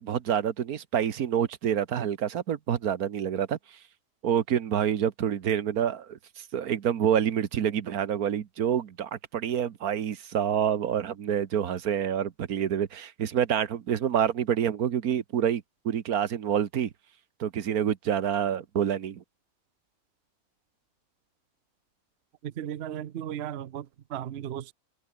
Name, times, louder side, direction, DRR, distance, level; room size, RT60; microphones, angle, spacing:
voice 1, 0.0-3.8 4.2-16.9 17.4-19.2, right 9 dB, 80° right, 1.6 m, -27 dB
voice 2, 22.4-24.7, right 10 dB, 55° right, 0.9 m, -36 dB
omnidirectional pair, 1.5 m